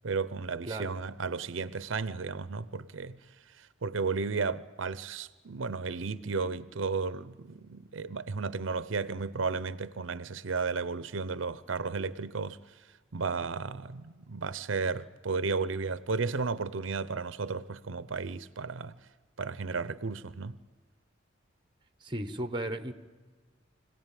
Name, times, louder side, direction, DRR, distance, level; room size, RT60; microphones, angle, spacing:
voice 1, 0.0-3.2 3.6-12.6 13.1-18.9 19.4-20.6, right 4 dB, 85° right, 0.7 m, -33 dB
voice 2, 22.0-22.9, right 1 dB, 25° right, 1.2 m, -35 dB
25.5 x 17.5 x 9.1 m
head